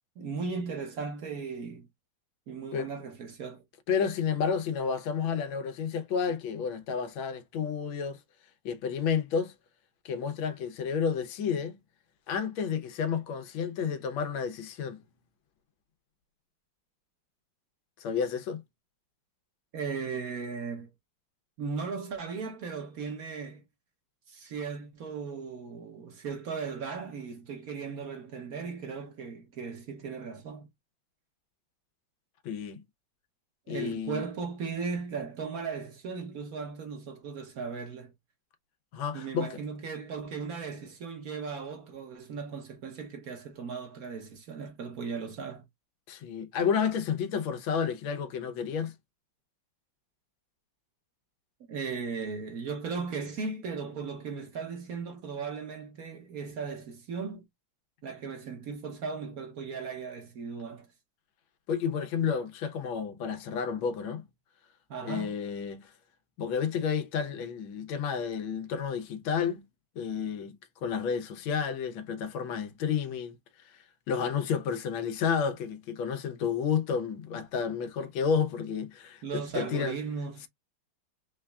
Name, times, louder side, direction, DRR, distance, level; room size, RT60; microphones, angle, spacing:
voice 1, 0.2-1.9 2.5-3.6 19.7-20.9 21.6-23.6 24.3-30.7 33.7-38.1 39.1-45.6 51.7-57.5 58.0-60.9 64.9-65.3 79.2-80.5, right 5 dB, 55° right, 1.2 m, -37 dB
voice 2, 3.9-8.2 8.6-9.5 10.0-11.8 12.3-15.0 18.0-18.6 32.4-32.8 33.7-34.2 38.9-39.6 46.1-48.9 61.7-64.2 65.0-65.9 66.4-69.6 70.0-70.6 70.8-73.4 73.6-73.7 74.1-79.2 79.5-79.9, left 6 dB, 90° left, 1.6 m, -31 dB
4.1 x 3.4 x 2.2 m
omnidirectional pair, 2.1 m